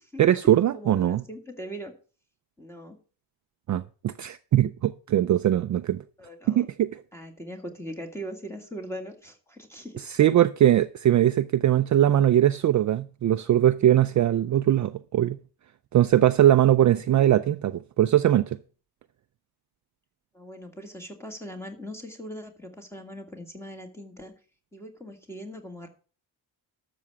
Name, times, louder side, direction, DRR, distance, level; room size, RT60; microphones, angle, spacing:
voice 1, 0.2-1.2 3.7-6.0 6.5-7.0 10.0-15.4 15.9-18.6, right 12 dB, 45° right, 0.4 m, -21 dB
voice 2, 0.7-1.9 2.6-3.0 6.2-6.7 7.1-10.0 20.3-24.3 24.7-25.9, equal, 5° left, 2.0 m, -40 dB
12.5 x 7.0 x 4.8 m
wide cardioid pair, 165°, 42 cm